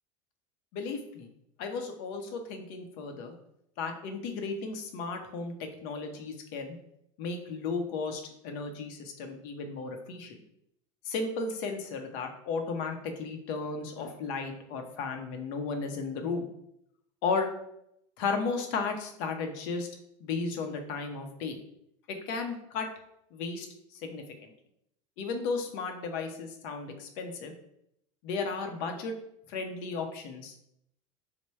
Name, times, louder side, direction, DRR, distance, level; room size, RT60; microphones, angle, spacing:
voice 1, 0.7-1.3 1.6-3.3 3.8-5.5 5.8-6.8 7.2-10.4 11.1-16.4 17.2-17.5 18.2-19.9 20.2-21.6 22.1-22.9 23.3-23.7 23.9-24.5 25.2-27.5 28.2-29.1 29.5-30.5, left 4 dB, 65° left, 5 dB, 0.7 m, -34 dB
3.3 x 2.2 x 4.2 m, 0.76 s
supercardioid pair, 105°, 16 cm